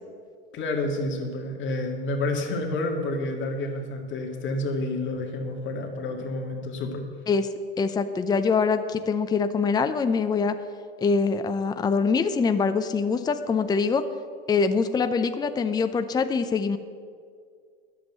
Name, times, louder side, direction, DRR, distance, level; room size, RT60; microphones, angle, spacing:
voice 1, 0.5-7.0, left 2 dB, 40° left, 2 dB, 2.0 m, -29 dB
voice 2, 7.8-10.6 11.0-14.0 14.5-16.8, left 5 dB, 15° left, 9 dB, 0.6 m, -24 dB
10.0 x 7.5 x 8.0 m, 2.1 s
hypercardioid pair, 100°, 31 cm